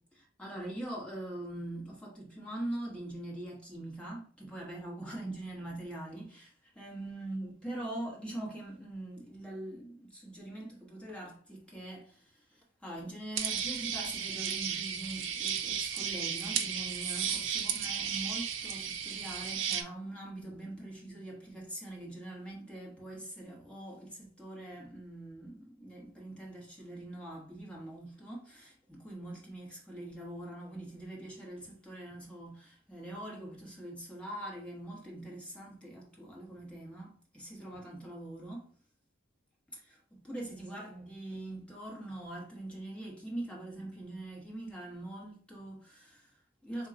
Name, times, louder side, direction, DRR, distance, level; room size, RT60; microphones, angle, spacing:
voice 1, 0.1-38.7 39.7-46.9, right 1 dB, 5° left, 1.1 m, -43 dB
sound 1, 13.4-19.8, right 8 dB, 70° right, 0.5 m, -34 dB
3.6 x 2.3 x 3.8 m
head